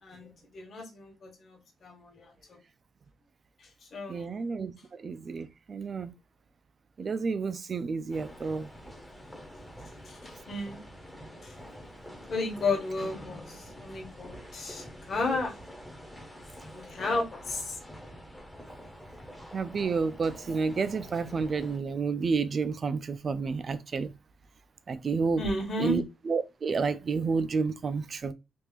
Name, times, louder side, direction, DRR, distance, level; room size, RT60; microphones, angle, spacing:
voice 1, 0.0-2.6 3.6-4.4 10.0-10.2 10.5-10.8 11.4-11.5 12.2-15.6 16.1-16.3 16.7-17.8 25.4-26.0, left 2 dB, 45° left, 1.2 m, -33 dB
voice 2, 4.1-4.7 5.0-6.1 7.0-8.7 19.5-24.1 24.9-25.4 25.8-28.3, right 4 dB, 35° right, 0.3 m, -30 dB
sound 1, 8.1-21.8, equal, ahead, 0.6 m, -47 dB
3.5 x 2.4 x 3.0 m
cardioid pair, 160°, 0 cm